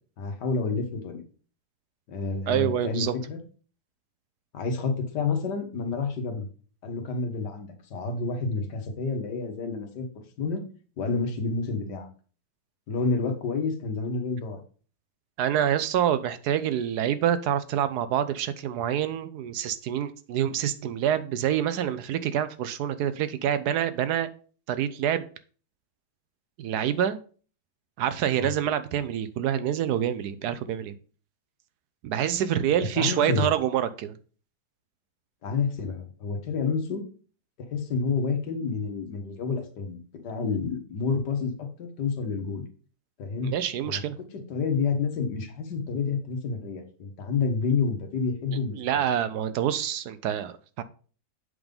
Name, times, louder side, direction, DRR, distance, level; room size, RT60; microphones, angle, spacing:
voice 1, 0.2-1.2 2.1-3.4 4.5-6.5 6.8-10.1 10.4-10.6 11.0-12.1 12.9-14.6 28.3-28.5 33.0-33.5 35.4-37.0 37.7-40.0 40.2-42.6 43.2-43.5 43.8-49.0, left 4 dB, 80° left, 4 dB, 1.8 m, -29 dB
voice 2, 2.5-3.1 15.4-24.3 24.7-25.3 26.6-27.2 28.0-30.9 32.0-34.2 43.4-44.2 48.5-50.8, right 10 dB, 75° right, 12 dB, 1.1 m, -27 dB
7.9 x 3.8 x 5.2 m, 0.41 s
omnidirectional pair, 1.8 m